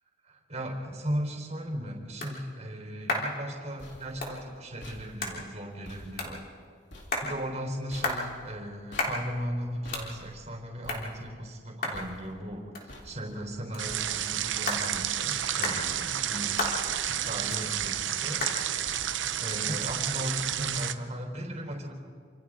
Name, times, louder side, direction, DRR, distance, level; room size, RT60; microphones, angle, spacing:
voice 1, 0.2-6.4 7.2-16.6 17.1-18.5 19.4-21.9, equal, 35° right, 2 dB, 3.9 m, -37 dB
sound 1, 1.3-20.6, left 2 dB, 50° left, 3.7 m, -38 dB
sound 2, 3.4-14.6 14.9-15.5 15.9-16.5 16.9-17.6 17.8-18.3 18.8-19.4 19.9-20.4, left 1 dB, 75° left, 3.5 m, -51 dB
sound 3, 13.8-20.9, right 11 dB, 85° right, 0.8 m, -31 dB
28.0 x 27.5 x 3.8 m, 2.2 s
head